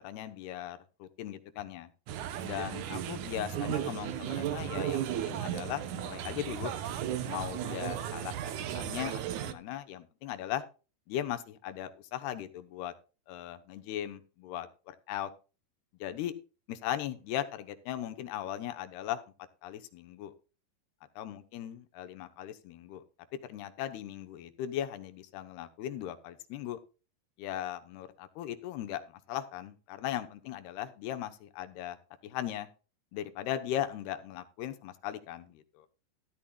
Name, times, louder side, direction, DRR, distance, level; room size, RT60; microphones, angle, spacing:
voice 1, 0.0-1.9 2.4-6.7 7.3-10.6 11.1-12.9 13.3-15.3 16.0-16.3 16.7-19.2 19.6-20.3 21.2-23.0 23.4-26.8 27.4-32.0 32.2-32.7 33.1-35.9, left 11 dB, 75° left, 10 dB, 2.9 m, -38 dB
sound 1, 2.1-9.5, right 10 dB, 80° right, 1.7 m, -35 dB
14.0 x 12.5 x 2.3 m, 0.34 s
omnidirectional pair, 4.8 m